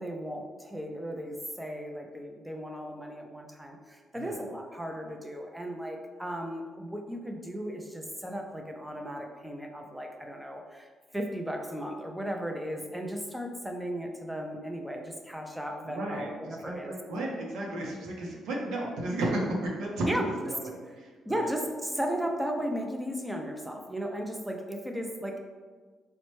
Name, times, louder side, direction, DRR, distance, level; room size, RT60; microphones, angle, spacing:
voice 1, 0.0-17.0 20.0-20.3 21.2-25.4, equal, 5° right, 2 dB, 0.4 m, -35 dB
voice 2, 15.9-20.6 20.9-21.5, right 1 dB, 85° right, -2 dB, 0.6 m, -33 dB
4.0 x 2.1 x 3.0 m, 1.5 s
cardioid pair, 90°, 0 cm